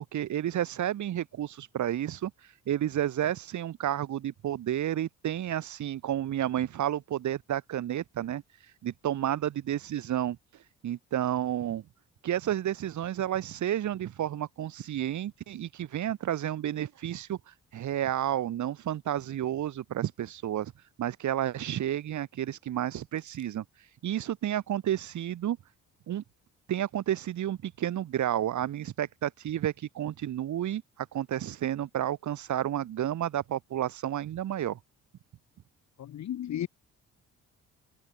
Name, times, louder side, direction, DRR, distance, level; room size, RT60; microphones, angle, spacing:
voice 1, 0.1-2.3 2.7-8.4 8.8-10.4 10.8-11.8 12.2-20.7 21.0-23.6 24.0-25.6 26.1-26.2 26.7-34.8, right 11 dB, 70° right, 6.4 m, -31 dB
voice 2, 36.0-36.7, left 11 dB, 65° left, 2.5 m, -34 dB
cardioid pair, 90°, 30 cm